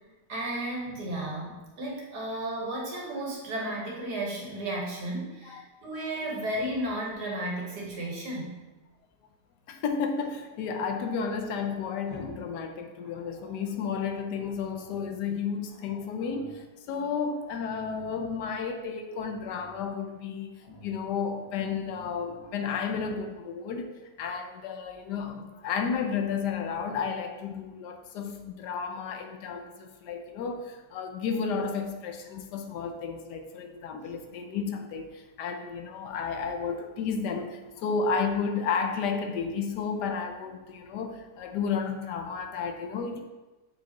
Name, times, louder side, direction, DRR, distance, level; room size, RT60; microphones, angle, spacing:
voice 1, 0.3-8.6, right 1 dB, 75° right, -3 dB, 1.9 m, -33 dB
Growling, 6.4-8.4 10.8-12.5 12.8-13.7 14.3-15.2 15.6-16.6 17.0-17.1 17.3-18.6 19.1-19.9 20.6-21.0 21.3-22.6 22.9-23.2, left 2 dB, 35° left, 1.3 m, -51 dB
voice 2, 9.7-43.2, left 5 dB, 85° left, 5 dB, 1.3 m, -32 dB
6.9 x 4.9 x 2.9 m, 1.2 s
omnidirectional pair, 1.7 m